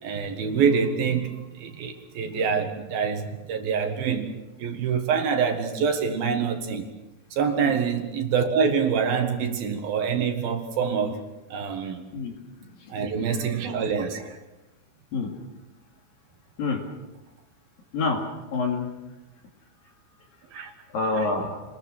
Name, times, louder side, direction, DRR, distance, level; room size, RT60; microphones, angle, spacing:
voice 1, 0.0-4.3 4.6-6.9 7.3-11.2 11.5-12.0 12.9-14.4 20.5-20.7 21.2-21.3, right 6 dB, 60° right, 5 dB, 3.0 m, -26 dB
voice 2, 12.6-12.9 15.1-15.3 16.6-16.8 17.9-18.2 18.5-18.9 20.9-21.6, left 3 dB, 50° left, 2 dB, 4.0 m, -27 dB
28.0 x 20.5 x 6.5 m, 1.0 s
omnidirectional pair, 5.5 m